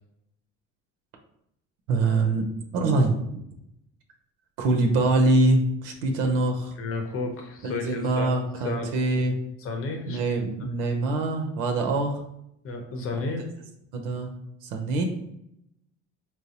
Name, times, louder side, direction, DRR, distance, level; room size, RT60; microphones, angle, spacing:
voice 1, 1.9-2.5 2.7-3.4 4.6-6.7 7.6-9.4 10.1-12.2 13.9-14.3 14.6-15.0, right 2 dB, 90° right, 4 dB, 0.6 m, -24 dB
voice 2, 6.8-8.3 8.6-8.9 9.6-10.2 12.6-13.5, left 3 dB, 40° left, 3 dB, 0.8 m, -32 dB
4.4 x 2.0 x 2.8 m, 0.78 s
supercardioid pair, 85°, 34 cm